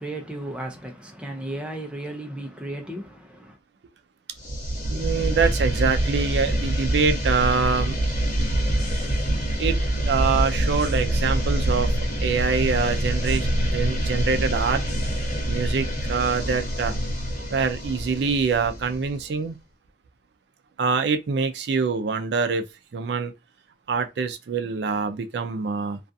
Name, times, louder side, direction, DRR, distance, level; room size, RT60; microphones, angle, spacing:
voice 1, 0.0-3.6, right 1 dB, 5° right, 0.4 m, -34 dB
sound 1, 4.4-19.2, right 1 dB, 40° left, 1.0 m, -25 dB
voice 2, 4.9-7.9 9.6-9.8 10.1-11.9 12.2-14.8 15.5-16.9 17.5-19.6 20.8-22.7 22.9-23.3 23.9-26.0, right 5 dB, 70° right, 0.4 m, -25 dB
2.4 x 2.3 x 2.6 m
head